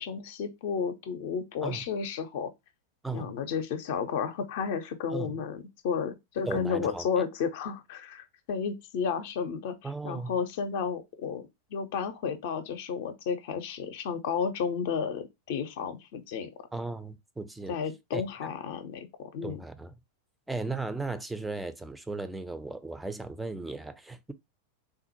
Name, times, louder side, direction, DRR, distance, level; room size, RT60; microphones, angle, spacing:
voice 1, 0.0-2.5 3.1-11.4 11.7-16.5 17.7-19.6, left 6 dB, 50° left, 0.5 m, -32 dB
voice 2, 6.5-7.1 9.8-10.4 16.7-17.8 18.1-18.5 19.4-19.9 20.5-24.3, right 3 dB, 5° right, 0.4 m, -36 dB
3.5 x 2.1 x 2.8 m
figure-of-eight pair, 90°, 0 cm